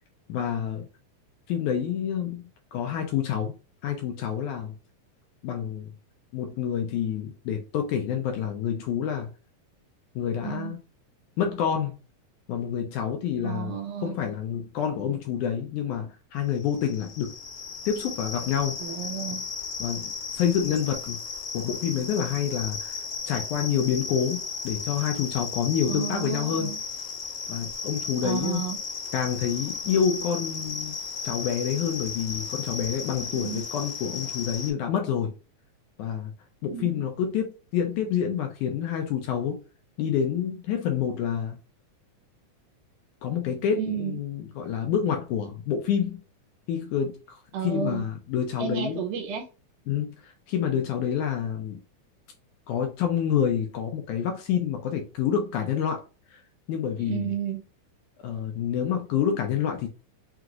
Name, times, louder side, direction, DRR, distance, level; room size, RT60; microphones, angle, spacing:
voice 1, 0.3-0.9 1.5-3.5 3.8-4.7 5.4-5.9 6.3-9.3 10.2-10.8 11.4-12.0 12.5-13.7 14.0-17.3 17.9-18.8 19.8-21.2 21.5-26.7 27.5-28.6 29.1-31.0 31.2-35.3 36.0-36.3 36.6-39.6 40.0-41.6 43.2-46.2 46.7-49.0 49.9-51.8 52.7-56.0 56.3-56.4 56.7-57.3 58.2-59.9, left 8 dB, 75° left, 1.9 m, -28 dB
voice 2, 10.4-10.8 13.4-14.2 18.8-19.4 25.9-26.8 28.2-28.8 33.3-33.6 36.7-37.0 43.7-44.2 47.5-48.1 48.6-49.5 57.0-57.6, right 8 dB, 75° right, 2.1 m, -32 dB
sound 1, 16.5-34.7, left 5 dB, 60° left, 1.8 m, -35 dB
5.8 x 2.9 x 2.4 m
omnidirectional pair, 4.0 m